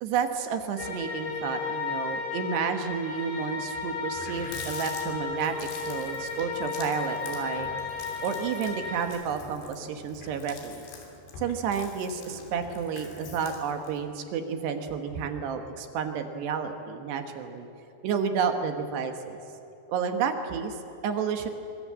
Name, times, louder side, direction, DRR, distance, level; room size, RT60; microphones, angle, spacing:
voice 1, 0.0-5.6 5.9-7.7 8.2-10.9 11.4-17.7 18.0-19.4 19.9-21.5, right 6 dB, 75° right, 6 dB, 3.4 m, -31 dB
sound 1, 0.8-9.1, left 5 dB, 60° left, 6.3 m, -34 dB
Water tap faucet, 3.6-3.7 3.9-14.0, left 4 dB, 80° left, 5.4 m, -45 dB
24.5 x 23.5 x 7.6 m, 3.0 s
omnidirectional pair, 5.1 m